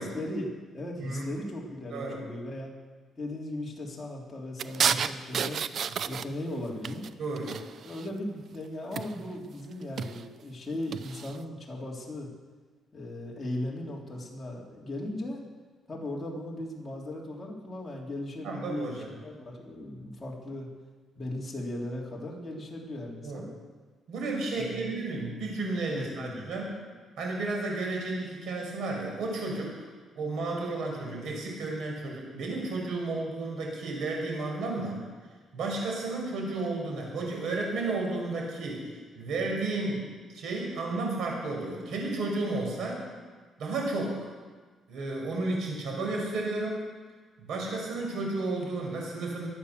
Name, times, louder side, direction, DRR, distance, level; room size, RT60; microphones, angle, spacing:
voice 1, 0.1-2.7 3.2-5.6 6.1-7.1 7.8-12.3 12.9-15.4 15.9-18.9 19.2-20.7 21.2-23.4 24.5-25.0 25.9-26.5, left 1 dB, 20° left, -3 dB, 3.7 m, -37 dB
sound 1, 4.6-6.5 6.8-8.1 8.9-9.4 9.8-10.2 10.9-11.4, right 7 dB, 50° right, 0.6 m, -31 dB
voice 2, 7.2-7.5 18.4-19.1 23.2-23.4 24.1-26.7 27.2-29.7 30.1-35.0 35.5-38.9 39.2-40.1 40.3-43.0 43.6-44.3 44.9-46.8 47.4-49.5, right 2 dB, 70° right, 0 dB, 5.7 m, -32 dB
23.0 x 8.9 x 6.9 m, 1.4 s
cardioid pair, 130°, 0 cm